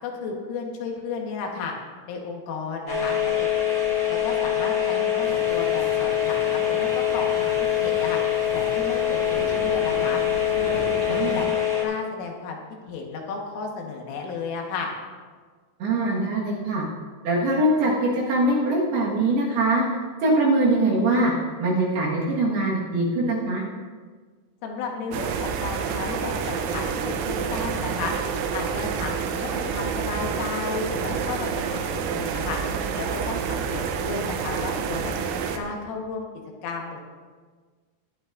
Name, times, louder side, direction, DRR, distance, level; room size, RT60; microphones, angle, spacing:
voice 1, 0.0-1.7 2.1-3.5 4.1-10.2 10.5-11.5 11.8-12.6 12.9-14.9 24.6-32.6 32.9-35.1 35.5-36.2 36.6-37.0, left 4 dB, 80° left, 0 dB, 3.9 m, -33 dB
sound 1, 2.9-11.8, left 9 dB, 35° right, 1.2 m, -24 dB
sound 2, 5.2-11.5, left 2 dB, 50° left, 2.1 m, -40 dB
voice 2, 11.1-11.4 15.8-16.8 17.2-19.8 20.2-21.3 21.6-23.6, right 2 dB, 60° right, -4 dB, 3.1 m, -22 dB
sound 3, 25.1-35.6, right 6 dB, 80° right, 3.2 m, -28 dB
18.5 x 11.0 x 2.6 m, 1.5 s
omnidirectional pair, 5.8 m